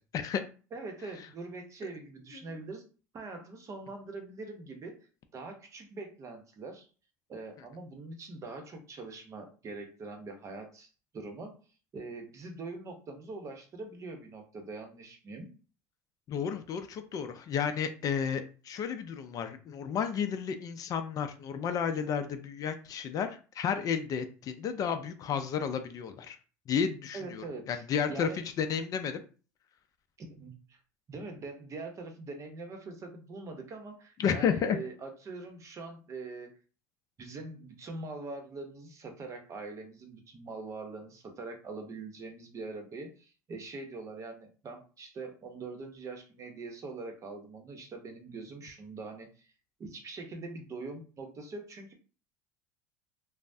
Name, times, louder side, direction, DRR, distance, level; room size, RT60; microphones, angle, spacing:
voice 1, 0.7-2.8 3.1-5.0 5.3-6.9 7.3-10.9 11.1-11.6 11.9-15.5 27.1-27.8 28.1-28.4 30.2-30.8 31.1-36.5 37.2-49.5 49.8-51.9, right 3 dB, 35° right, 4 dB, 0.8 m, -43 dB
voice 2, 16.3-26.4 26.7-28.3 28.6-29.2 34.2-34.8, left 7 dB, 40° left, 8 dB, 0.4 m, -32 dB
3.1 x 2.0 x 2.6 m, 0.36 s
supercardioid pair, 95°, 9 cm